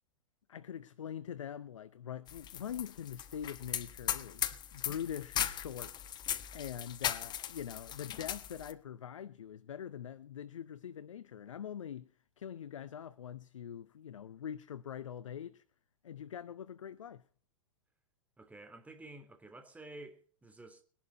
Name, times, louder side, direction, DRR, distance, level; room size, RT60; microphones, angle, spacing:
voice 1, 0.5-6.3 6.5-12.1 12.4-15.6 16.0-17.2, left 9 dB, 70° left, 0.9 m, -43 dB
sound 1, 2.3-8.7, left 10 dB, 25° left, 1.2 m, -38 dB
voice 2, 18.4-20.8, right 2 dB, 10° right, 3.2 m, -51 dB
21.0 x 11.5 x 4.2 m
figure-of-eight pair, 100°, 17 cm